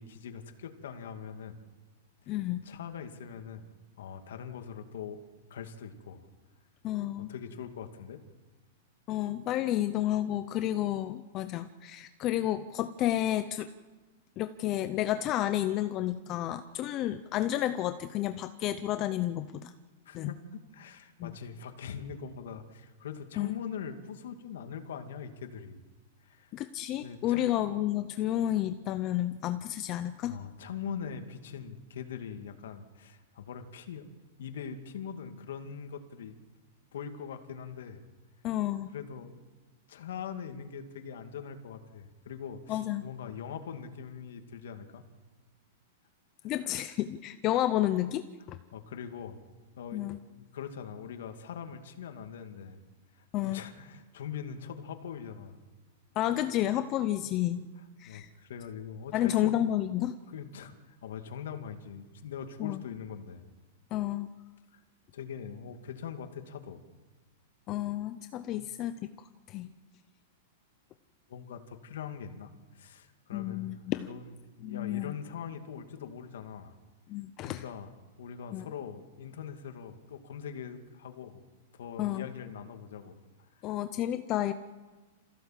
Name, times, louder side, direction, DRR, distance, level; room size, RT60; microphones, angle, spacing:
voice 1, 0.0-1.6 2.2-3.7 4.0-5.2 5.5-6.3 7.2-8.2 20.1-25.8 26.2-26.5 27.0-27.5 30.2-34.1 34.4-36.3 36.9-38.0 38.9-39.4 39.9-45.0 46.4-46.5 48.7-49.4 49.8-52.8 53.2-55.6 58.1-59.6 60.3-63.4 64.7-64.8 65.1-66.8 68.5-68.7 71.3-73.7 74.0-76.8 77.4-77.9 78.2-81.4 81.7-83.5, left 7 dB, 75° left, 6 dB, 2.3 m, -42 dB
voice 2, 2.3-2.6 6.8-7.3 9.1-13.7 14.4-19.7 20.1-20.3 21.2-21.4 23.4-23.6 26.5-30.4 38.4-38.9 42.7-43.0 46.4-48.6 49.9-50.2 53.3-53.6 56.2-57.7 58.0-58.3 59.1-60.1 62.6-62.8 63.9-64.3 67.7-69.0 69.5-69.7 73.3-74.1 74.6-75.1 77.1-77.6 78.5-78.6 82.0-82.3 83.6-84.5, left 13 dB, 25° left, 10 dB, 0.6 m, -31 dB
27.0 x 15.5 x 7.5 m, 1.3 s
supercardioid pair, 165°, 0 cm